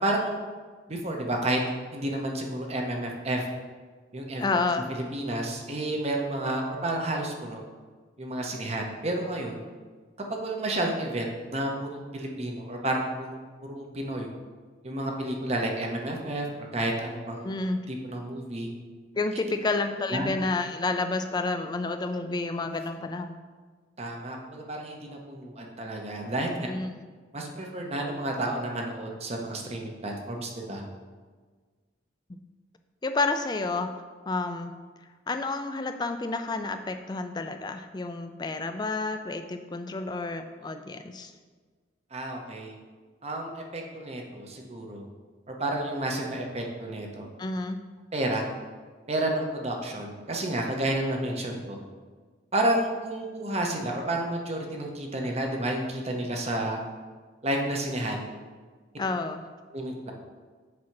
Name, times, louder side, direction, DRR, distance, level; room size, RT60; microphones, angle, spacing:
voice 1, 0.0-0.4 0.9-1.6 1.9-3.5 4.1-4.6 4.9-7.6 8.2-9.6 10.3-14.3 14.8-17.5 17.9-18.7 20.1-20.3 24.0-26.7 27.3-30.8 42.1-42.8 43.2-45.0 45.6-47.3 48.1-48.5 49.1-51.8 52.5-56.8 57.4-58.3 59.7-60.1, right 1 dB, 35° right, 1 dB, 0.8 m, -31 dB
voice 2, 4.4-4.9 17.4-17.8 19.2-23.4 26.7-27.0 32.3-32.4 33.0-33.9 34.3-34.7 35.3-41.3 47.4-47.8 59.0-59.4, left 3 dB, 20° left, 7 dB, 0.4 m, -30 dB
7.5 x 2.8 x 5.8 m, 1.5 s
head